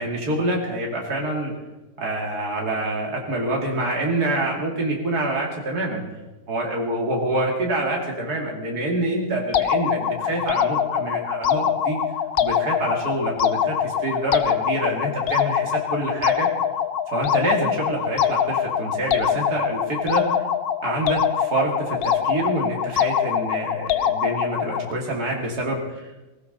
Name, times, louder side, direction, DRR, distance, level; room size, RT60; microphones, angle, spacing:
voice 1, 0.0-1.5 2.0-6.0 6.5-12.0 12.4-16.5 17.1-20.2 20.8-26.2, right 1 dB, 65° right, -1 dB, 3.1 m, -26 dB
sound 1, 9.5-24.9, left 9 dB, 80° left, 0.5 m, -24 dB
18.0 x 17.0 x 4.1 m, 1.1 s
omnidirectional pair, 1.8 m